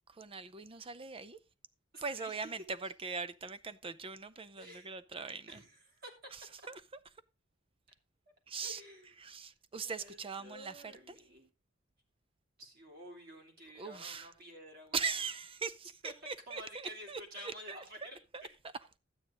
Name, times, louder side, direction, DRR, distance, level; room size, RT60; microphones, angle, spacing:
voice 1, 0.1-1.4 2.0-5.6 6.3-6.8 8.5-8.8 9.2-11.2 13.8-14.3 14.9-17.8 18.3-18.4, right 5 dB, 30° right, 0.5 m, -41 dB
voice 2, 1.9-2.5 4.6-4.9 5.5-6.1 8.6-9.1 9.8-11.5 12.6-15.0 16.0-16.1 16.5-18.2, equal, 50° right, 3.1 m, -51 dB
12.0 x 9.0 x 3.9 m
head